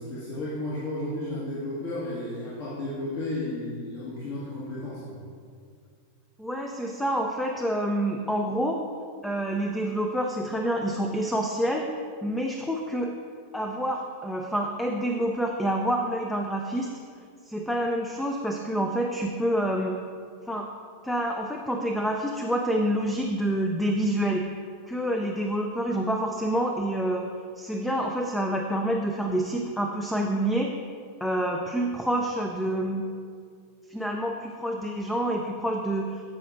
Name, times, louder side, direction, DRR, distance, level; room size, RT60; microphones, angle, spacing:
voice 1, 0.0-5.2, left 1 dB, 50° left, -8 dB, 1.7 m, -33 dB
voice 2, 6.4-8.8 9.2-11.9 12.2-13.1 13.5-16.9 17.5-20.0 20.5-20.7 21.0-24.4 24.9-27.3 27.6-30.7 31.2-33.0 33.9-36.2, right 1 dB, 5° left, 2 dB, 0.5 m, -27 dB
14.0 x 5.1 x 2.6 m, 2.1 s
figure-of-eight pair, 90°, 0 cm